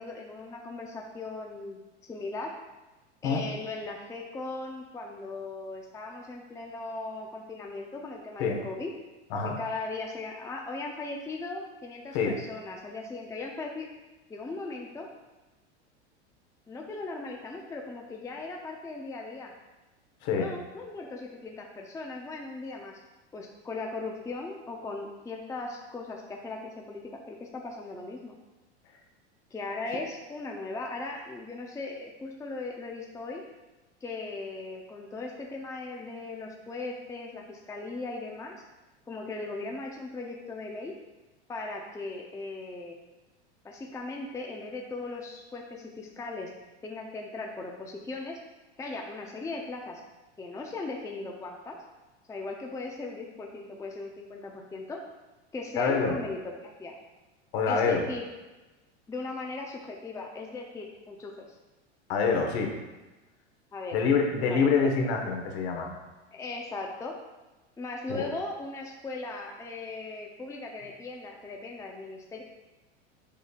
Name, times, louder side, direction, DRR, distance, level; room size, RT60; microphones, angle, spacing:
voice 1, 0.0-2.6 3.2-8.9 9.6-13.9 14.3-15.1 16.7-19.5 20.4-23.0 23.3-28.4 29.5-33.4 34.0-38.6 39.1-40.9 41.5-43.0 43.6-46.5 46.8-48.4 48.8-50.0 50.4-51.8 52.3-55.0 55.5-56.9 57.6-58.2 59.1-61.6 63.7-64.1 64.5-64.9 66.3-67.1 67.8-72.4, left 3 dB, 10° left, 1 dB, 0.6 m, -38 dB
voice 2, 55.7-56.1 57.5-58.0 62.1-62.7 63.9-65.9 68.1-68.3, left 5 dB, 60° left, 2 dB, 1.4 m, -26 dB
7.4 x 5.2 x 2.4 m, 1.1 s
hypercardioid pair, 100°, 35 cm